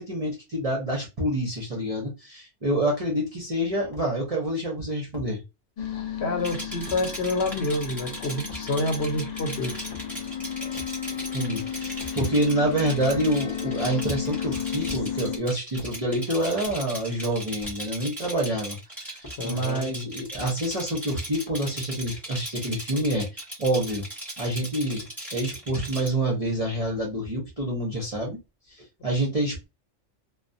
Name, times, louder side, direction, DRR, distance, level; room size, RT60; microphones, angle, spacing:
voice 1, 0.0-5.4 11.3-24.1 24.4-28.4 28.7-29.7, right 1 dB, 40° right, 0.5 m, -27 dB
sound 1, 3.9-4.1 5.1-5.3 6.9-7.0 8.5-8.7 9.7-10.3 10.7-11.0 12.0-12.2 13.1-13.5 14.0-14.3 14.8-15.3 15.7-16.0 16.6-16.9 17.6-17.9 19.2-19.4 20.3-20.5 21.4-21.8, left 1 dB, 25° left, 0.6 m, -43 dB
sound 2, 5.8-15.4, left 9 dB, 85° left, 0.3 m, -33 dB
voice 2, 6.2-9.8 19.4-19.9, left 2 dB, 60° left, 0.9 m, -28 dB
Rattle, 6.4-26.1, right 1 dB, ahead, 0.8 m, -38 dB
2.2 x 2.2 x 2.5 m
omnidirectional pair, 1.3 m